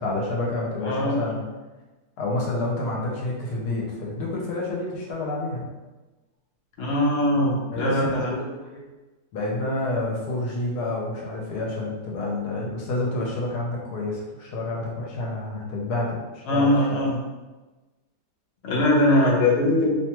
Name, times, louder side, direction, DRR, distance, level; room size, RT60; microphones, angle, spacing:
voice 1, 0.0-1.4 2.2-5.7 7.7-8.8 9.3-17.0, left 2 dB, 80° left, -2 dB, 1.2 m, -29 dB
voice 2, 0.8-1.4 6.8-8.3 16.5-17.2 18.6-20.0, left 1 dB, 55° left, -4 dB, 0.8 m, -21 dB
2.8 x 2.3 x 2.9 m, 1.2 s
omnidirectional pair, 1.8 m